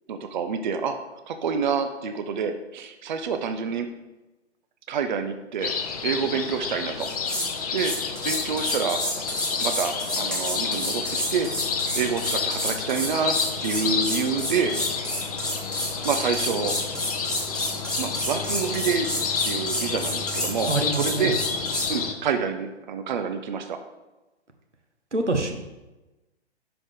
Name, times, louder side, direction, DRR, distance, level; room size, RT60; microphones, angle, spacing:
voice 1, 0.1-1.0 1.3-3.9 4.9-7.1 7.5-7.9 8.2-9.0 9.5-11.0 11.3-11.5 11.9-14.7 15.7-16.7 18.0-19.1 19.4-21.4 21.9-23.8, right 6 dB, 45° right, 7 dB, 0.6 m, -28 dB
sound 1, 5.6-22.1, left 5 dB, 35° left, 0.7 m, -30 dB
sound 2, 7.0-7.5 7.8-21.9, equal, ahead, 1.0 m, -30 dB
voice 2, 20.7-21.3 25.1-25.5, right 2 dB, 90° right, 4 dB, 1.2 m, -25 dB
11.5 x 4.9 x 3.7 m, 1.1 s
figure-of-eight pair, 125°, 34 cm